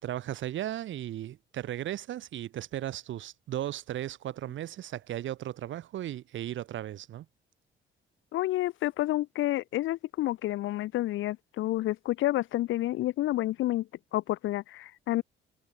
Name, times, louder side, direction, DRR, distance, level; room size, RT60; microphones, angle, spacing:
voice 1, 0.0-7.3, right 12 dB, 75° right, 2.0 m, -36 dB
voice 2, 8.3-13.9 14.1-15.2, left 15 dB, 80° left, 0.7 m, -29 dB
cardioid pair, 90°, 20 cm